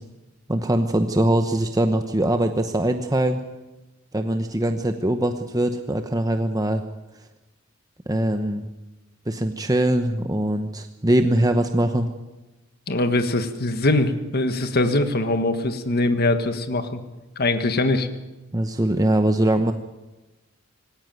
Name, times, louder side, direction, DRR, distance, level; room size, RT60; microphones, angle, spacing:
voice 1, 0.5-3.4 4.1-6.8 8.1-8.7 9.3-12.1 18.5-19.7, right 1 dB, 20° right, 6 dB, 1.0 m, -22 dB
voice 2, 12.9-17.0 17.4-18.1, left 2 dB, 50° left, 8 dB, 1.5 m, -22 dB
19.0 x 17.5 x 9.2 m, 1.1 s
head